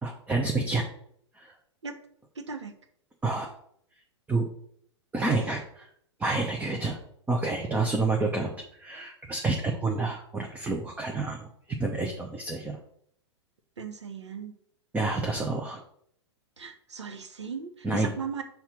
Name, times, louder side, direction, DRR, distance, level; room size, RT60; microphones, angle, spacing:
voice 1, 0.0-0.9 1.4-1.5 3.2-3.5 4.3-4.5 5.1-5.9 6.2-7.0 7.3-8.5 8.8-12.8 14.9-15.8 17.8-18.1, right 3 dB, 10° right, 2 dB, 0.7 m, -29 dB
voice 2, 2.3-2.7 13.8-14.5 16.6-18.4, right 5 dB, 75° right, 8 dB, 1.0 m, -37 dB
5.8 x 3.6 x 5.7 m, 0.67 s
figure-of-eight pair, 105°, 15 cm